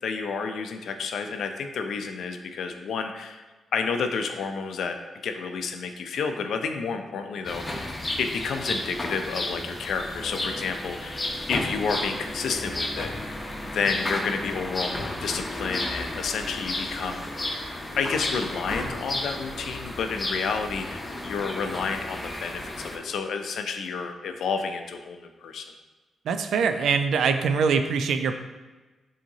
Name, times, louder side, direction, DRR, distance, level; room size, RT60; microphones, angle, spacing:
voice 1, 0.0-3.4 3.7-5.0 5.2-7.9 8.2-17.3 18.0-25.7, left 5 dB, 70° left, 6 dB, 0.4 m, -30 dB
sound 1, 7.4-23.0, left 1 dB, 30° left, 0.9 m, -33 dB
sound 2, 8.1-23.6, equal, 10° right, 1.1 m, -46 dB
voice 2, 26.3-28.4, right 5 dB, 75° right, 8 dB, 0.3 m, -23 dB
6.9 x 2.8 x 2.7 m, 1.2 s
supercardioid pair, 50°, 0 cm